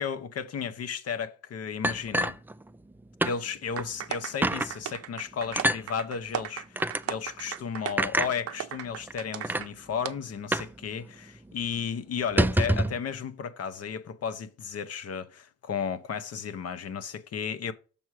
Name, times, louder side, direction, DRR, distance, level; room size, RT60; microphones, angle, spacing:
voice 1, 0.0-2.4 3.2-17.7, left 7 dB, 55° left, 0.9 m, -34 dB
sound 1, 1.8-2.9 3.2-3.4 3.8-3.9 4.4-4.7 5.6-5.8 6.8-7.0 8.0-8.3 9.1-9.2 9.4-9.7 10.5-10.8 11.0-11.1 11.5-11.7 12.2-13.0, right 1 dB, 5° right, 0.3 m, -26 dB
sound 2, 3.8-9.7 10.0-10.1, right 10 dB, 50° right, 0.6 m, -37 dB
7.1 x 4.7 x 4.7 m
cardioid pair, 90°, 30 cm